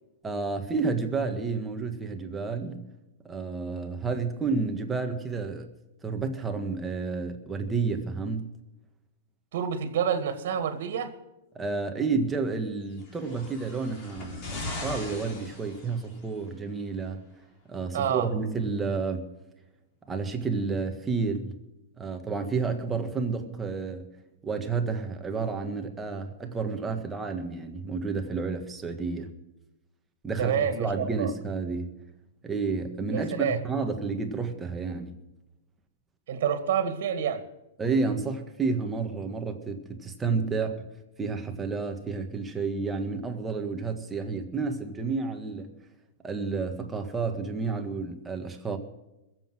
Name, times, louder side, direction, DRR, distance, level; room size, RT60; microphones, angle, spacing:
voice 1, 0.2-2.9 3.2-5.7 6.0-8.5 11.5-17.2 17.7-19.3 20.1-21.5 22.0-24.1 24.4-29.3 30.2-31.9 32.4-35.1 37.8-40.8 41.2-45.7 46.2-48.8, right 4 dB, 10° right, 5 dB, 1.6 m, -30 dB
voice 2, 9.5-11.1 17.9-18.3 30.4-31.3 33.1-33.6 36.3-37.4, right 8 dB, 65° right, 9 dB, 2.0 m, -28 dB
sound 1, 13.0-16.4 17.3-17.4, left 2 dB, 35° left, 4.1 m, -39 dB
21.5 x 7.8 x 6.2 m, 0.95 s
hypercardioid pair, 150°, 0 cm